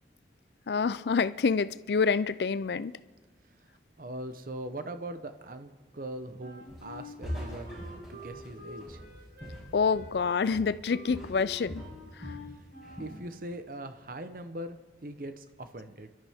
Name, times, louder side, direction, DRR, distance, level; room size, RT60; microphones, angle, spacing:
voice 1, 0.7-2.9 9.7-11.8 12.2-12.3, left 5 dB, 70° left, 0.4 m, -27 dB
voice 2, 4.0-7.8 8.1-9.0 13.0-16.1, right 1 dB, 50° right, 0.9 m, -41 dB
Wind instrument woodwind instrument, 6.4-13.2, left 1 dB, 70° right, 6.2 m, -48 dB
Walk footsteps, 6.7-7.0 7.2-10.3 10.5-10.8 11.1-12.5 12.8-13.2, equal, ahead, 5.7 m, -42 dB
29.5 x 12.5 x 3.6 m
head